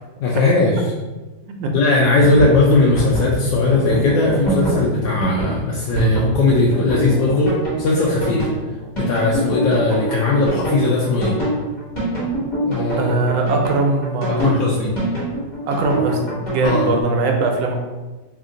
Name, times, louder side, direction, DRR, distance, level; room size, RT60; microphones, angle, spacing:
voice 1, 0.2-0.9 1.7-7.5 7.8-8.4 9.0-11.3 12.6-13.1 14.4-14.9 16.6-16.9, left 3 dB, 80° left, -4 dB, 1.2 m, -18 dB
sound 1, 2.0-16.9, right 2 dB, 25° left, 1.2 m, -24 dB
voice 2, 13.0-14.6 15.7-17.8, right 3 dB, 80° right, 3 dB, 1.3 m, -20 dB
3.4 x 2.5 x 3.7 m, 1.2 s
omnidirectional pair, 2.0 m